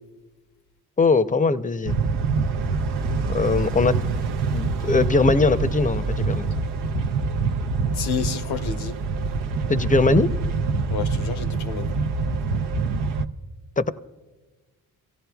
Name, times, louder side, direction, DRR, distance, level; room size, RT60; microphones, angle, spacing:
voice 1, 1.0-2.0 3.3-4.0 4.5-6.6 9.7-10.3 13.8-13.9, left 3 dB, 20° left, 0.6 m, -21 dB
sound 1, 1.8-13.2, right 4 dB, 90° right, 0.7 m, -25 dB
voice 2, 7.9-9.0 10.9-11.9, left 6 dB, 75° left, 0.9 m, -30 dB
25.0 x 16.0 x 2.3 m
supercardioid pair, 60°, 39 cm